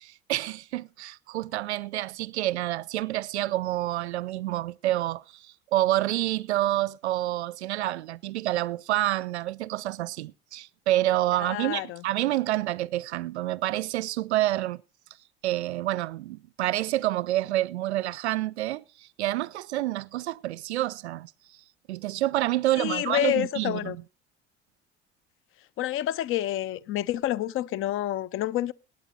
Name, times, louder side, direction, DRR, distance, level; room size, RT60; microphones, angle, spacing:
voice 1, 0.0-14.8 15.4-21.3 21.9-24.0, right 15 dB, 70° right, 0.5 m, -28 dB
voice 2, 11.4-12.0 22.8-24.0 25.8-28.7, left 13 dB, 40° left, 0.5 m, -28 dB
18.0 x 8.0 x 4.0 m
figure-of-eight pair, 60°, 35 cm